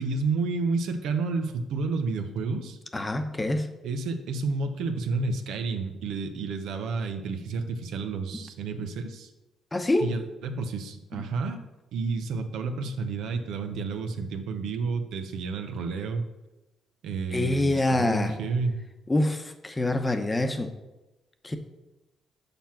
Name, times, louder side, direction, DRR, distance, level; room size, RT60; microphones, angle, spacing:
voice 1, 0.0-2.8 3.8-9.3 10.0-11.6 11.9-16.3 17.0-18.8, right 4 dB, 80° right, 6 dB, 0.9 m, -30 dB
voice 2, 2.9-3.7 9.7-10.1 11.1-11.3 17.3-18.4 19.1-20.7 21.4-21.6, left 2 dB, 20° left, 7 dB, 0.9 m, -26 dB
6.9 x 5.9 x 5.9 m, 1.0 s
cardioid pair, 90°, 0 cm